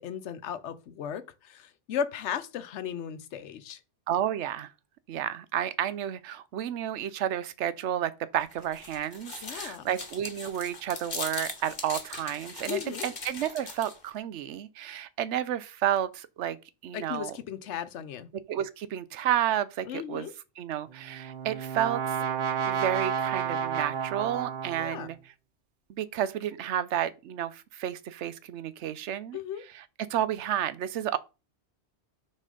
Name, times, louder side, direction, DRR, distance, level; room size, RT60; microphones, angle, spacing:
voice 1, 0.0-3.8 9.4-9.9 12.7-13.1 16.9-18.3 19.9-20.3 24.8-25.1 29.3-29.6, left 8 dB, 90° left, 1.0 m, -36 dB
voice 2, 4.1-4.7 5.1-16.6 16.8-17.4 18.5-20.3 20.6-22.2 22.6-25.2 25.9-29.4 29.7-29.8 30.1-31.2, right 11 dB, 85° right, 0.9 m, -31 dB
sound 1, 8.4-14.1, left 3 dB, 40° left, 1.2 m, -40 dB
Brass instrument, 20.9-25.1, right 7 dB, 55° right, 0.7 m, -31 dB
6.2 x 4.2 x 3.8 m
omnidirectional pair, 1.2 m